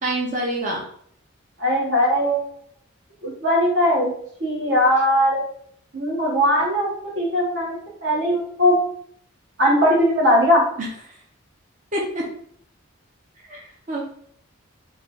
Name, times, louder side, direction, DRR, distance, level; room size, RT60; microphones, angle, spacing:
voice 1, 0.0-0.8 10.8-10.9 11.9-12.3 13.5-14.0, right 1 dB, 35° right, -2 dB, 0.6 m, -26 dB
voice 2, 1.6-2.5 3.2-4.1 4.4-5.4 5.9-8.8 9.6-10.6, equal, 65° right, -2 dB, 1.2 m, -19 dB
3.2 x 2.2 x 4.1 m, 0.63 s
head